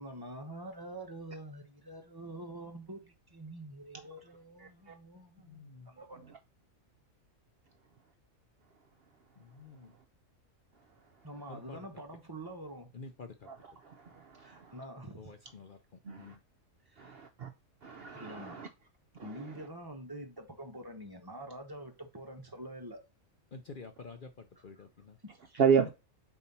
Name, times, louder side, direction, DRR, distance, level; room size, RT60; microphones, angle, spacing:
voice 1, 0.0-6.2 11.2-12.9 14.4-15.3 16.9-17.2 18.1-18.6 19.2-23.0 24.6-24.8 25.2-25.6, right 1 dB, 20° right, 1.0 m, -46 dB
voice 2, 5.4-5.9 9.4-9.9 11.5-11.8 12.9-13.5 15.2-15.8 16.1-16.4 23.5-25.2, left 4 dB, 50° left, 0.7 m, -49 dB
voice 3, 17.0-17.5 17.8-18.7 19.2-19.3 25.6-25.9, right 7 dB, 55° right, 0.7 m, -29 dB
4.5 x 4.2 x 5.4 m
omnidirectional pair, 1.4 m